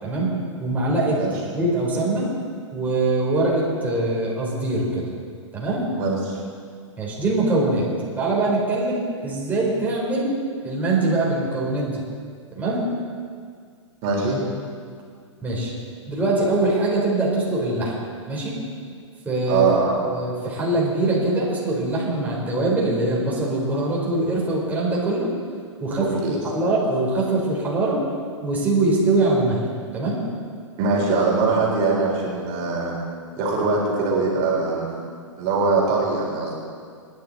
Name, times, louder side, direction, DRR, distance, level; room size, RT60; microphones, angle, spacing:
voice 1, 0.6-1.2 1.5-2.3 2.7-5.0 5.5-5.9 7.0-7.8 8.2-10.3 10.6-12.0 12.6-12.9 15.4-15.7 16.1-17.9 18.3-18.6 19.2-19.6 20.0-25.3 25.8-28.0 28.4-29.6 29.9-30.2, right 2 dB, 10° right, -6 dB, 4.0 m, -23 dB
voice 2, 5.9-6.4 14.0-14.5 19.5-19.9 26.0-26.4 30.8-33.0 33.4-34.9 35.4-36.5, right 4 dB, 40° right, -3 dB, 4.1 m, -22 dB
26.5 x 10.5 x 4.1 m, 2.1 s
hypercardioid pair, 115°, 16 cm